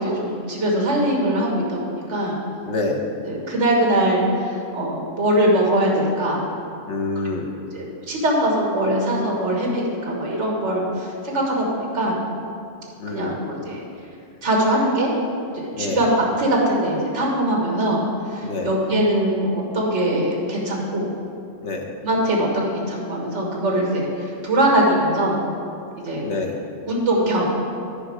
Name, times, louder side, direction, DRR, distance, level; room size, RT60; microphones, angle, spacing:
voice 1, 0.0-2.4 3.3-6.4 7.5-12.2 13.1-13.8 14.4-15.1 15.5-16.1 16.4-21.1 22.0-24.1 24.4-25.4 26.0-26.3 26.9-27.5, right 1 dB, 65° right, -1 dB, 1.8 m, -22 dB
voice 2, 2.7-3.0 6.9-7.5 13.0-13.4 15.7-16.0 18.4-18.7 21.6-21.9 26.2-26.6, left 3 dB, 60° left, 1 dB, 1.2 m, -26 dB
12.0 x 5.2 x 4.9 m, 2.4 s
omnidirectional pair, 1.3 m